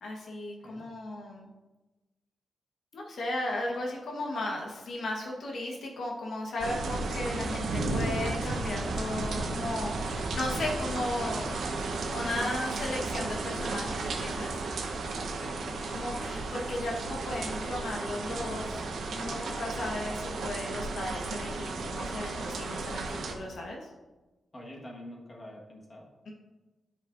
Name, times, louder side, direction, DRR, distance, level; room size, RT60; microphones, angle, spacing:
voice 1, 0.0-1.5 2.9-11.6 12.1-14.5 15.9-18.8 19.1-23.8, left 1 dB, 65° left, -1 dB, 1.2 m, -35 dB
sound 1, 6.6-23.3, right 3 dB, 75° right, 0.8 m, -34 dB
voice 2, 15.3-15.7 24.5-26.1, left 1 dB, 25° left, -2 dB, 1.4 m, -46 dB
12.5 x 5.3 x 2.5 m, 1.1 s
wide cardioid pair, 140°, 0 cm